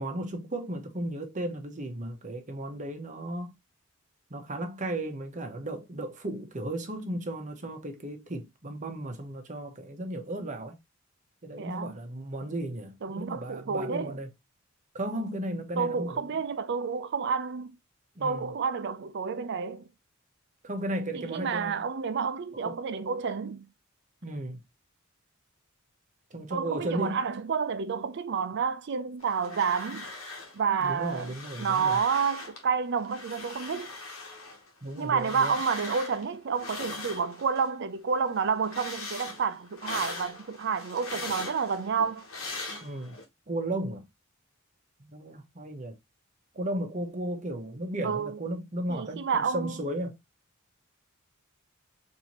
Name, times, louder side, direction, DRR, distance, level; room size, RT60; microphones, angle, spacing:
voice 1, 0.0-3.5 4.3-10.8 11.4-14.3 14.9-16.3 18.2-18.5 20.6-21.8 22.5-22.7 24.2-24.6 26.3-27.2 30.8-32.0 34.8-35.6 42.8-43.2 43.5-44.1 45.0-45.9 46.5-50.2, right 1 dB, 35° right, 0.9 m, -35 dB
voice 2, 11.6-12.0 13.0-14.2 15.8-17.8 18.2-19.9 21.1-23.7 26.5-30.1 30.5-33.9 35.0-42.3 48.0-48.4 48.9-49.7, right 6 dB, 55° right, 0.5 m, -30 dB
sound 1, 29.2-30.6 30.8-32.6 33.0-37.7 38.1-43.2, left 3 dB, 80° left, 1.1 m, -41 dB
4.4 x 2.7 x 2.9 m
head